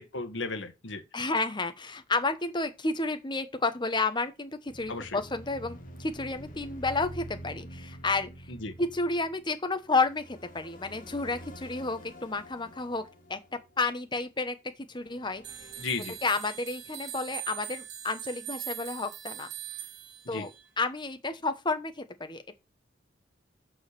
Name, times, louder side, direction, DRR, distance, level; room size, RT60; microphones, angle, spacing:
voice 1, 0.0-1.0 4.9-5.2 8.6-8.7 15.8-16.2 20.3-20.5, left 3 dB, 75° left, 1.5 m, -35 dB
voice 2, 1.1-8.3 8.8-13.0 13.3-13.4 13.8-14.5 14.9-15.7 16.2-19.5 20.3-20.5 20.8-22.6, left 3 dB, 25° left, 1.2 m, -31 dB
sound 1, 4.7-14.2 14.9-17.0, right 1 dB, 45° left, 2.1 m, -47 dB
sound 2, 15.4-20.7, right 11 dB, 60° right, 2.1 m, -41 dB
6.5 x 5.8 x 6.8 m
head